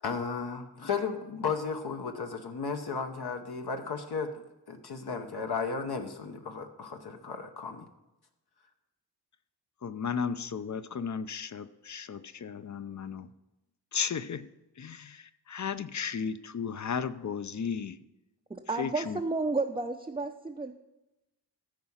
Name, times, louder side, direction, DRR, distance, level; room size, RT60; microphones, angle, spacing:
voice 1, 0.0-7.9, left 5 dB, 65° left, 5 dB, 1.0 m, -34 dB
voice 2, 9.8-13.3 13.9-14.5 14.8-18.0 18.8-19.2, left 6 dB, 45° left, 13 dB, 0.5 m, -34 dB
voice 3, 18.5-20.7, right 3 dB, 15° right, 3 dB, 0.5 m, -32 dB
14.0 x 4.8 x 5.5 m, 0.97 s
wide cardioid pair, 90°, 42 cm